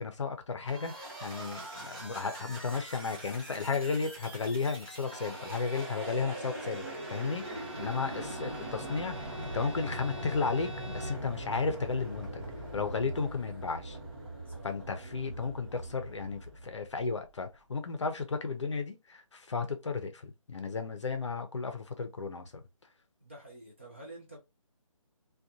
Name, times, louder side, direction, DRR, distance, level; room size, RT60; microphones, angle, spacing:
voice 1, 0.0-12.5 12.7-14.0 14.6-22.6, left 4 dB, 55° left, 0.5 m, -34 dB
sound 1, 0.7-17.3, right 1 dB, 45° right, 1.1 m, -42 dB
Bowed string instrument, 4.6-11.3, equal, 60° right, 0.7 m, -48 dB
voice 2, 7.9-8.2 13.4-13.5 14.5-14.7 23.2-24.4, right 2 dB, 20° right, 0.5 m, -50 dB
2.4 x 2.2 x 2.7 m
hypercardioid pair, 180°, 18 cm